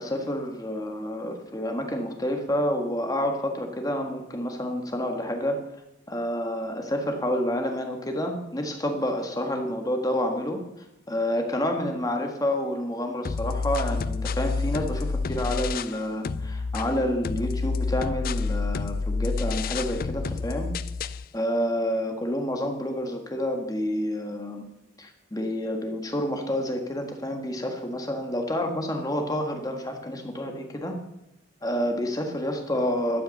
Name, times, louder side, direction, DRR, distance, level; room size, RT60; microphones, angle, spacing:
voice 1, 0.0-5.6 6.1-10.6 11.1-20.7 21.3-24.6 25.0-30.9 31.6-33.2, left 1 dB, 20° left, 3 dB, 1.6 m, -29 dB
sound 1, 13.2-16.0 16.2-21.2, left 4 dB, 45° left, 0.4 m, -29 dB
12.5 x 9.4 x 6.6 m, 0.89 s
head